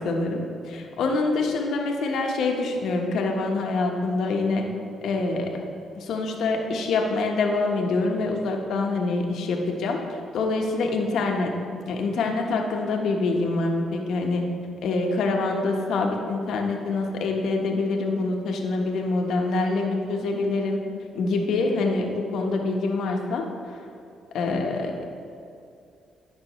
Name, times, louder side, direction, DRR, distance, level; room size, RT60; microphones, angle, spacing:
voice 1, 0.0-4.7 5.0-5.5 5.9-11.5 11.9-14.4 14.8-20.8 21.1-23.8 24.3-24.9, left 3 dB, 75° left, 1 dB, 1.2 m, -25 dB
15.5 x 6.0 x 3.1 m, 2.6 s
cardioid pair, 90°, 0 cm